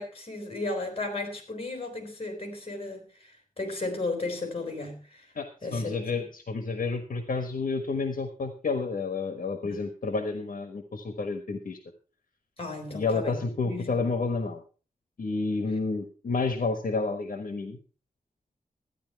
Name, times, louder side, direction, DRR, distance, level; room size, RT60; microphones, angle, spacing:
voice 1, 0.0-5.3 5.6-6.2 9.6-9.9 12.6-14.0, left 2 dB, 40° left, 5 dB, 4.2 m, -35 dB
voice 2, 5.3-11.8 12.9-14.6 15.2-17.8, left 3 dB, 70° left, 7 dB, 1.3 m, -30 dB
13.5 x 10.0 x 4.6 m, 0.37 s
wide cardioid pair, 125°, 15 cm